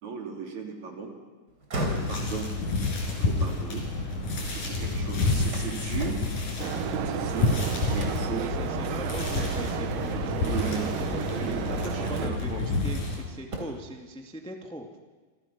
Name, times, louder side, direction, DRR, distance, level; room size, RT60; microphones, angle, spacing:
voice 1, 0.0-1.1 1.9-2.5 3.1-3.8 4.4-6.2 6.9-7.6 7.9-8.4 10.5-11.1 11.3-12.7, right 6 dB, 60° right, 2 dB, 4.7 m, -36 dB
sound 1, 1.5-4.6 5.0-7.4 8.0-8.4 8.8-9.0 9.5-10.0 11.2-11.4 12.0-13.1 13.4-14.0, right 2 dB, 30° right, 4.2 m, -39 dB
sound 2, 1.8-13.2, left 3 dB, 70° left, 6.3 m, -29 dB
sound 3, 6.6-12.3, right 10 dB, 80° right, 2.7 m, -33 dB
voice 2, 8.4-15.0, right 1 dB, ahead, 3 dB, 1.3 m, -40 dB
29.0 x 27.0 x 6.0 m, 1.4 s
omnidirectional pair, 3.8 m